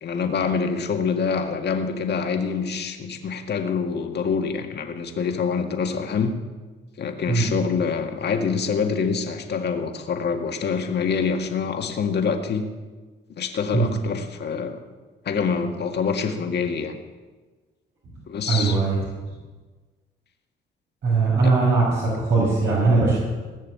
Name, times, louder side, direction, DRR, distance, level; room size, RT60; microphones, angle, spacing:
voice 1, 0.0-6.3 7.0-12.7 13.4-14.8 15.3-17.0 18.3-18.8 21.4-21.5, left 5 dB, 55° left, 4 dB, 1.8 m, -26 dB
voice 2, 18.5-19.0 21.0-23.2, right 3 dB, 65° right, -7 dB, 5.6 m, -20 dB
18.5 x 6.6 x 8.7 m, 1.3 s
cardioid pair, 90°, 20 cm